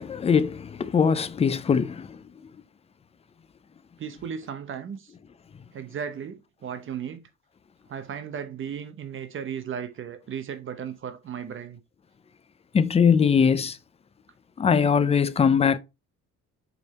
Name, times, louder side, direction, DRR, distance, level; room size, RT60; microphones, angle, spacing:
voice 1, 0.0-2.2 12.7-13.8 14.6-15.8, left 6 dB, 20° left, 0.4 m, -21 dB
voice 2, 4.0-5.1 5.7-7.2 7.9-11.8, right 8 dB, 45° right, 0.8 m, -35 dB
5.3 x 4.6 x 4.1 m
cardioid pair, 160°, 30 cm